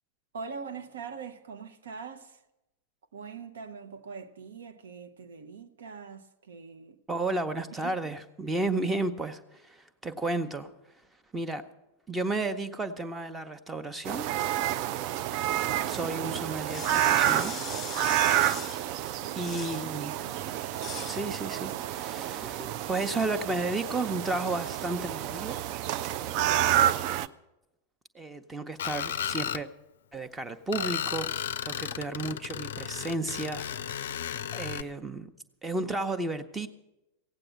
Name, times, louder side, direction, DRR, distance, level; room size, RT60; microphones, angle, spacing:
voice 1, 0.3-2.4 3.1-7.0 7.7-8.1 15.7-16.6 19.2-19.5 19.8-20.6, right 5 dB, 65° right, 0.9 m, -43 dB
voice 2, 7.1-10.7 11.3-11.6 12.1-14.3 15.9-17.6 19.3-20.1 21.1-25.6 28.1-29.7 30.1-31.3 31.6-34.2 34.5-35.3 35.6-36.7, right 2 dB, 10° right, 0.9 m, -33 dB
sound 1, 14.0-27.3, right 12 dB, 45° right, 0.4 m, -29 dB
sound 2, 16.6-18.9 19.4-19.9 20.7-21.2, left 9 dB, 25° left, 0.8 m, -40 dB
Screech, 28.8-29.6 30.7-34.8, left 9 dB, 60° left, 0.4 m, -34 dB
16.0 x 8.8 x 7.6 m
figure-of-eight pair, 90°, 0 cm